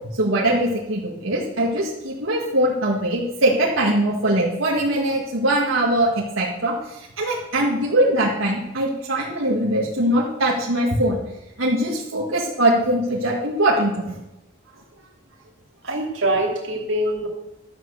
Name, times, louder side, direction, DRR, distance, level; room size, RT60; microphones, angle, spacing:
voice 1, 0.1-11.2 11.6-14.2, right 1 dB, 85° right, -4 dB, 1.9 m, -21 dB
voice 2, 15.8-17.3, right 1 dB, 65° right, 0 dB, 2.9 m, -23 dB
12.5 x 7.7 x 6.6 m, 0.95 s
head